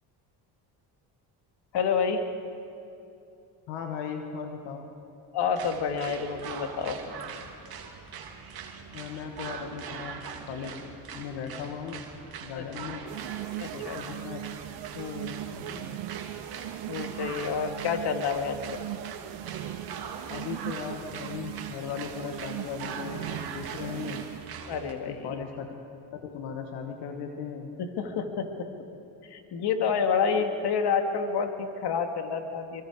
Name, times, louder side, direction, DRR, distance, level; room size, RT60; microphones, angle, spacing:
voice 1, 1.7-2.2 5.3-7.0 12.5-12.6 13.6-14.0 14.9-15.8 16.9-18.9 24.7-25.4 27.8-28.5 29.3-32.8, left 6 dB, 65° left, 6 dB, 2.2 m, -29 dB
voice 2, 3.7-4.9 8.9-10.8 11.1-12.0 12.4-13.1 13.7-14.4 15.7-16.0 20.3-24.2 25.1-25.7 26.1-27.7, left 7 dB, 85° left, 4 dB, 1.7 m, -37 dB
sound 1, 5.5-24.9, right 6 dB, 60° right, 2.5 m, -42 dB
sound 2, 13.1-24.6, right 15 dB, 80° right, 0.8 m, -39 dB
25.5 x 24.0 x 4.8 m, 2.7 s
supercardioid pair, 85°, 43 cm